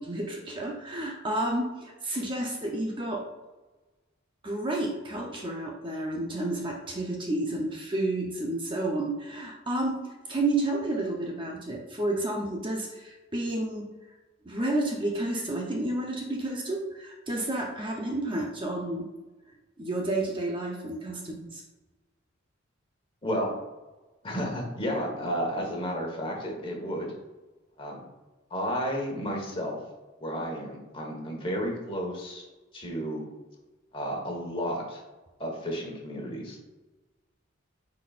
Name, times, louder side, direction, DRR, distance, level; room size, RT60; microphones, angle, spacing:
voice 1, 0.0-3.2 4.4-10.0 10.3-13.9 14.4-19.1 19.8-21.6, right 1 dB, 25° right, -1 dB, 0.7 m, -31 dB
voice 2, 23.2-23.5 24.2-27.1 27.8-28.0 28.5-29.8 30.2-32.5 32.7-33.2 33.9-35.0 35.4-36.6, equal, 25° left, 0 dB, 1.4 m, -32 dB
9.6 x 4.3 x 2.5 m, 1.2 s
head